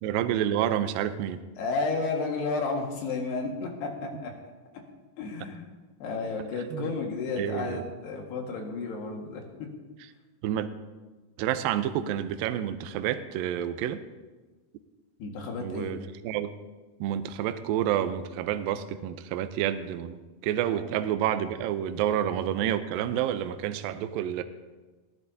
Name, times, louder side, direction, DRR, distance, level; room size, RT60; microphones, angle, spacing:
voice 1, 0.0-1.4 4.1-4.2 6.7-6.9 7.4-7.8 10.4-10.7 11.4-14.0 15.6-16.0 16.2-16.6 17.0-24.4, right 10 dB, 80° right, 9 dB, 2.1 m, -29 dB
voice 2, 1.6-4.3 5.2-5.7 6.0-9.7 15.2-15.9 20.7-20.9, left 3 dB, 75° left, 1 dB, 3.8 m, -32 dB
20.5 x 15.5 x 2.8 m, 1.3 s
omnidirectional pair, 4.7 m